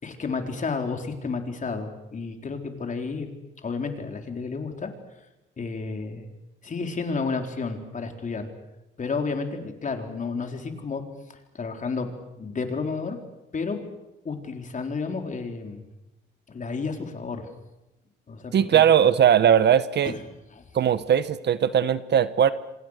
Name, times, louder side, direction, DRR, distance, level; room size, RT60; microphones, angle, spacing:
voice 1, 0.0-3.3 3.6-4.9 5.6-6.3 6.6-8.5 9.0-11.0 11.5-12.1 12.4-13.2 13.5-13.8 14.2-15.9 16.5-17.5 18.3-18.8 20.0-20.2 20.5-20.6, left 4 dB, 40° left, 4 dB, 4.0 m, -31 dB
voice 2, 18.5-20.1 20.7-22.5, right 9 dB, 60° right, 14 dB, 1.1 m, -19 dB
27.0 x 26.0 x 6.6 m, 0.97 s
cardioid pair, 90°, 20 cm